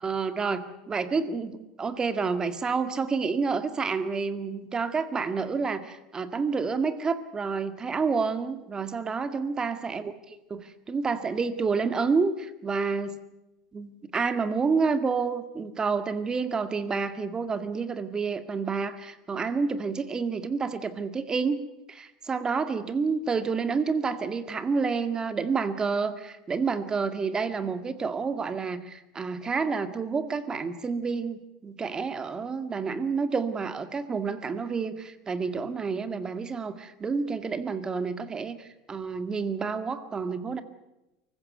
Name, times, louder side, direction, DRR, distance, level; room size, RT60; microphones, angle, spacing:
voice 1, 0.0-10.1 10.5-13.2 13.7-21.6 21.9-40.6, right 5 dB, 25° right, 11 dB, 2.0 m, -29 dB
24.5 x 15.0 x 9.3 m, 0.96 s
hypercardioid pair, 95°, 3 cm